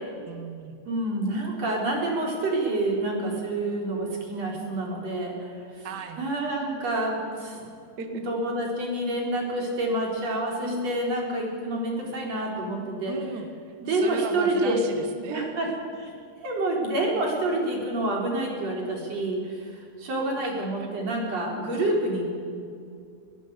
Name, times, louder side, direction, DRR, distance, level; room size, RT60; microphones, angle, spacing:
voice 1, 0.3-0.8 5.8-6.2 8.0-8.2 10.6-10.9 13.1-15.5 20.6-20.9, right 3 dB, 70° right, 7 dB, 0.9 m, -36 dB
voice 2, 0.8-5.9 6.2-7.7 8.1-13.1 13.8-14.8 15.3-15.7 15.9-16.1 16.4-22.2, right 1 dB, 45° right, -1 dB, 5.0 m, -28 dB
21.0 x 18.0 x 8.3 m, 2.4 s
omnidirectional pair, 4.4 m